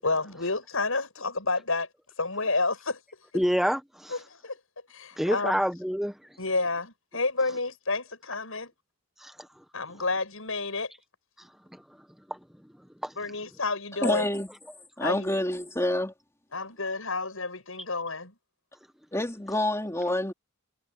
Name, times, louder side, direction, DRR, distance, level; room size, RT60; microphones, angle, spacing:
voice 1, 0.0-1.9 2.2-3.0 4.1-4.6 4.9-5.6 6.4-8.7 9.7-10.9 13.2-14.3 15.0-15.3 16.5-18.3, left 3 dB, 75° left, 8.0 m, -30 dB
voice 2, 3.3-4.1 5.2-6.2 9.2-9.3 12.3-12.4 13.0-13.1, equal, ahead, 1.4 m, -27 dB
voice 3, 14.0-14.5 15.0-16.1 19.1-20.3, left 1 dB, 15° left, 3.4 m, -27 dB
head